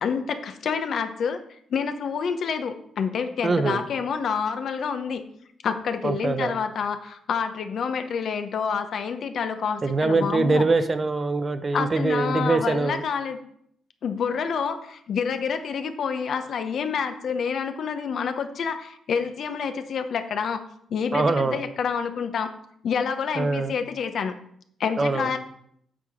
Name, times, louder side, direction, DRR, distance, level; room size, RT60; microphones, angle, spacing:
voice 1, 0.0-1.4 1.7-5.2 5.6-10.7 11.7-13.4 14.0-20.6 20.9-22.5 22.8-24.3 24.8-25.4, left 6 dB, 60° left, 8 dB, 0.9 m, -28 dB
voice 2, 3.4-3.8 6.0-6.5 9.8-13.0 21.1-21.6 23.4-23.7 25.0-25.3, right 3 dB, 30° right, 10 dB, 0.8 m, -23 dB
8.8 x 4.7 x 5.1 m, 0.68 s
cardioid pair, 90°, 0 cm